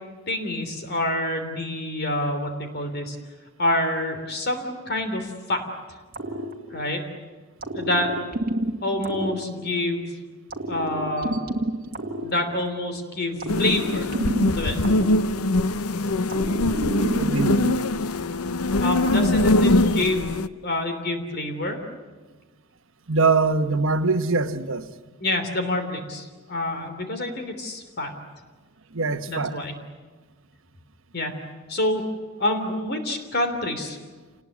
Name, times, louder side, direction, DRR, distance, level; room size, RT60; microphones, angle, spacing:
voice 1, 0.3-3.2 3.6-5.6 6.7-7.0 7.7-8.1 8.8-10.0 10.7-11.4 12.2-14.1 14.5-14.8 18.8-20.3 20.6-21.8 25.2-28.1 29.3-29.7 31.1-31.3 31.7-32.0 32.4-34.0, left 1 dB, 45° left, 3.2 m, -27 dB
sound 1, 6.1-7.1 7.6-10.0 10.5-12.9 13.4-15.8 16.3-17.8, right 1 dB, 40° right, 1.9 m, -30 dB
sound 2, 13.5-20.5, left 2 dB, 80° left, 0.8 m, -22 dB
voice 2, 17.2-17.8 23.1-24.9 28.9-29.5, right 3 dB, 60° right, 1.2 m, -23 dB
28.0 x 20.0 x 9.6 m
head